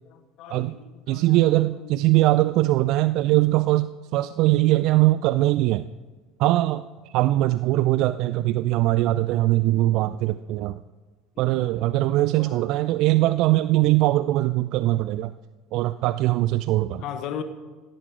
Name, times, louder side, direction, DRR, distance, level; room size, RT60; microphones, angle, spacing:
voice 1, 0.4-1.2 1.8-1.9 11.4-11.7 12.5-12.6 12.9-13.0 17.0-17.4, left 9 dB, 50° left, 9 dB, 1.3 m, -36 dB
voice 2, 1.1-5.9 6.4-6.9 7.1-10.8 11.4-15.3 15.7-17.0, right 16 dB, 55° right, 15 dB, 0.4 m, -21 dB
17.5 x 12.0 x 4.9 m, 1.3 s
figure-of-eight pair, 65°, 0 cm